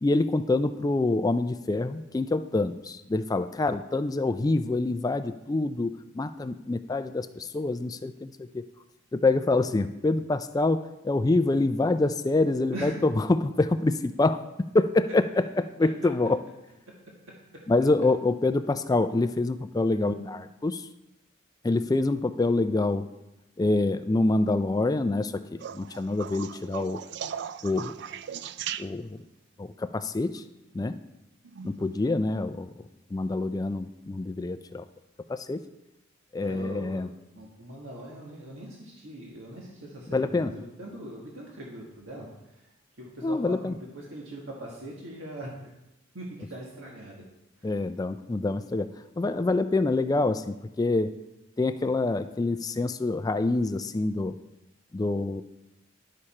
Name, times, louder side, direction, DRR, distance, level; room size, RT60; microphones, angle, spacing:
voice 1, 0.0-8.6 9.1-14.4 14.7-15.2 15.8-16.4 17.7-20.9 21.6-23.1 23.6-25.4 25.7-27.0 27.6-27.9 28.8-29.2 29.6-30.4 30.7-31.0 31.6-32.7 33.1-34.8 35.3-35.6 36.3-37.1 40.1-40.5 43.2-43.7 47.6-48.9 49.2-51.1 51.6-54.3 54.9-55.4, left 2 dB, 20° left, 11 dB, 0.3 m, -26 dB
voice 2, 19.9-20.2 36.4-37.0 37.3-42.7 43.0-45.7 46.1-47.2 47.6-47.7, right 1 dB, 85° right, -3 dB, 1.6 m, -41 dB
sound 1, 25.6-29.3 31.4-31.9 33.6-33.7, right 9 dB, 60° right, 0.3 m, -38 dB
11.0 x 6.7 x 4.3 m, 0.92 s
head